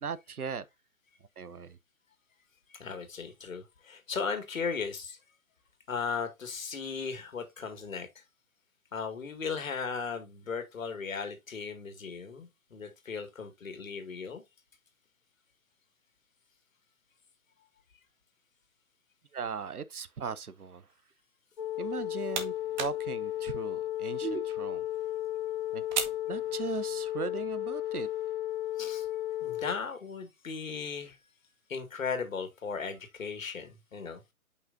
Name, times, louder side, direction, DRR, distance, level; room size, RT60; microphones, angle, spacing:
voice 1, 0.0-0.6 1.4-1.8 19.3-20.9 21.8-24.9 25.7-25.9 26.3-28.1, right 6 dB, 85° right, 0.8 m, -38 dB
voice 2, 2.8-5.2 5.9-8.1 8.9-14.4 28.8-29.1 29.4-31.2 31.7-34.3, left 5 dB, 65° left, 2.1 m, -37 dB
sound 1, 21.6-29.7, left 13 dB, 40° left, 0.6 m, -34 dB
sound 2, 21.8-27.1, right 6 dB, 30° right, 1.1 m, -41 dB
8.0 x 5.6 x 2.6 m
figure-of-eight pair, 140°, 44 cm